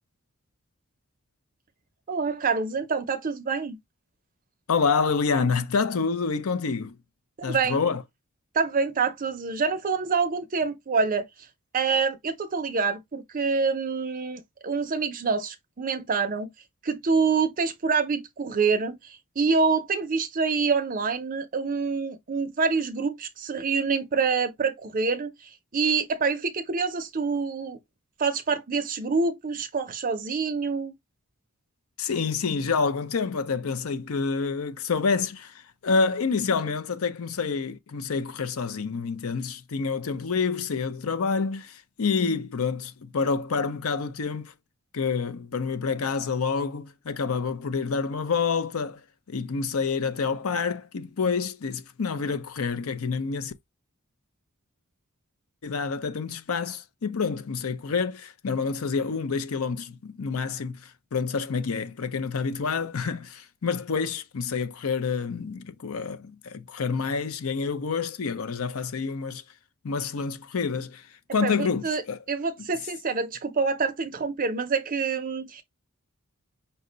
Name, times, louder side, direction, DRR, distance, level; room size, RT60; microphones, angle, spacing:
voice 1, 2.1-3.8 7.4-7.8 8.5-11.3 11.7-16.5 16.8-27.8 28.2-30.9 71.4-72.0 72.3-75.6, right 5 dB, 40° right, 0.5 m, -26 dB
voice 2, 4.7-7.0 7.4-8.0 32.0-44.5 44.9-49.0 49.3-53.5 55.6-69.4 69.8-72.2, left 5 dB, 80° left, 0.6 m, -28 dB
5.5 x 2.1 x 3.8 m
head